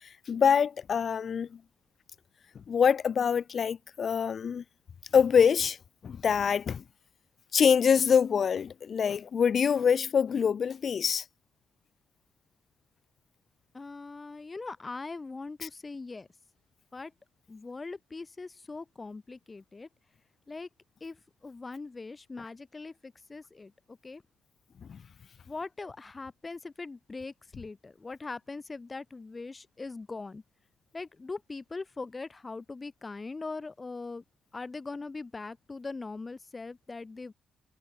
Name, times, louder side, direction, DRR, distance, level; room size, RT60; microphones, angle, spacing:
voice 1, 0.0-1.6 2.7-4.6 5.1-5.8 6.0-6.8 7.5-11.2 15.6-15.7 24.9-25.0, left 7 dB, 50° left, 2.9 m, -25 dB
voice 2, 13.7-16.3 16.9-17.1 17.5-19.9 20.5-20.7 21.0-21.2 21.4-24.2 25.5-30.4 30.9-34.2 34.5-37.3, left 3 dB, 25° left, 7.3 m, -41 dB
cardioid pair, 90°, 0 cm